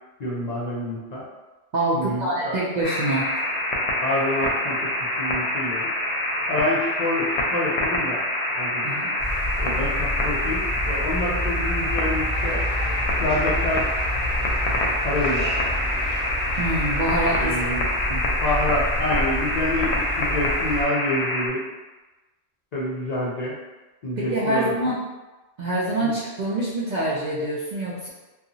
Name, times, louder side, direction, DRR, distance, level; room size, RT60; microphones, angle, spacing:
voice 1, 0.2-1.2 1.9-2.6 4.0-4.9 5.2-5.9 6.5-8.2 8.6-8.8 9.6-12.6 13.2-13.9 15.0-15.5 17.4-17.9 18.4-21.6 22.7-23.6 24.0-24.7, left 1 dB, 50° left, -7 dB, 0.5 m, -27 dB
voice 2, 1.7-3.3 8.8-9.1 16.6-17.6 18.1-18.2 24.2-25.0 25.6-28.1, right 1 dB, 55° right, -6 dB, 0.5 m, -25 dB
sound 1, 2.8-21.5, left 1 dB, 80° left, 0.8 m, -26 dB
sound 2, 9.2-20.8, left 1 dB, 30° left, 0.9 m, -29 dB
sound 3, 12.3-17.6, equal, 30° right, 1.6 m, -38 dB
2.8 x 2.3 x 2.6 m, 1.1 s
omnidirectional pair, 1.1 m